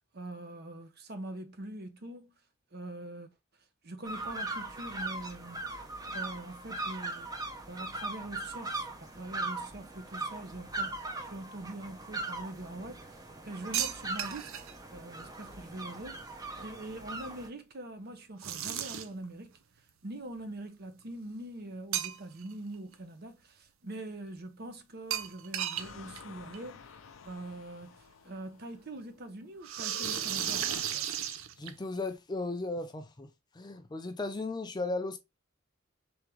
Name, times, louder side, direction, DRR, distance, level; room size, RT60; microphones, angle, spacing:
voice 1, 0.1-2.3 2.7-3.3 3.8-5.8 6.1-7.4 7.6-14.6 14.9-19.5 20.0-27.0 27.2-31.1, right 1 dB, 50° right, 0.8 m, -43 dB
sound 1, 4.0-17.5, right 2 dB, 20° right, 0.7 m, -40 dB
sound 2, 13.7-14.7 18.4-19.2 21.9-22.5 22.9-23.0 25.1-25.9 26.2-26.3 26.5-26.6 27.8-27.9 29.6-32.0, right 10 dB, 85° right, 0.5 m, -34 dB
sound 3, 25.8-30.8, left 5 dB, 80° left, 0.5 m, -51 dB
voice 2, 31.6-33.3 33.5-35.2, left 2 dB, 20° left, 0.5 m, -36 dB
3.6 x 3.5 x 3.0 m
head